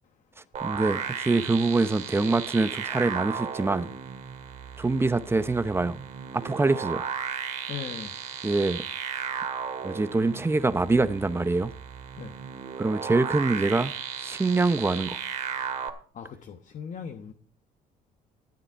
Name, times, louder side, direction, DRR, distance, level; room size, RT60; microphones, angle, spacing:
voice 1, 0.4-3.9 4.8-6.0 6.3-7.1 8.4-8.8 9.8-11.7 12.8-15.2, right 3 dB, 15° right, 0.8 m, -25 dB
sound 1, 0.5-15.9, right 7 dB, 45° right, 2.0 m, -35 dB
voice 2, 7.7-8.1 12.2-12.3 16.1-17.3, left 7 dB, 50° left, 1.2 m, -38 dB
13.5 x 9.2 x 4.5 m
cardioid pair, 110°, 17 cm